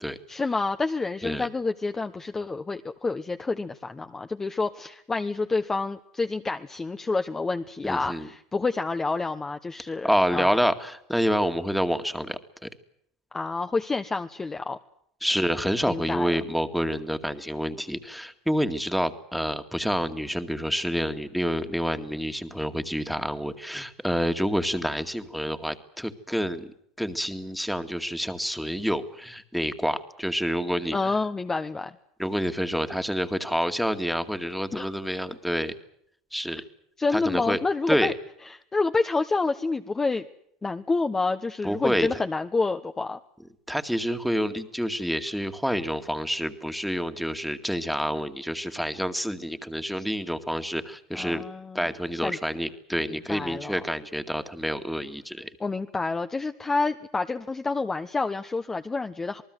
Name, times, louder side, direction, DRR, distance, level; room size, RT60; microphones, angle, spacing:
voice 1, 0.3-10.5 13.3-14.8 15.9-16.3 30.9-31.9 34.7-34.9 37.0-38.1 38.4-40.3 40.6-43.2 51.1-51.9 52.2-52.4 53.1-53.7 55.6-59.4, left 3 dB, 15° left, 7 dB, 1.1 m, -28 dB
voice 2, 7.8-8.3 10.0-12.7 15.2-31.1 32.2-35.7 36.3-36.6 37.1-37.6 37.9-38.1 41.6-42.1 43.7-51.4 51.7-55.5, equal, ahead, 8 dB, 2.1 m, -28 dB
27.5 x 19.5 x 7.9 m, 0.70 s
supercardioid pair, 105°, 3 cm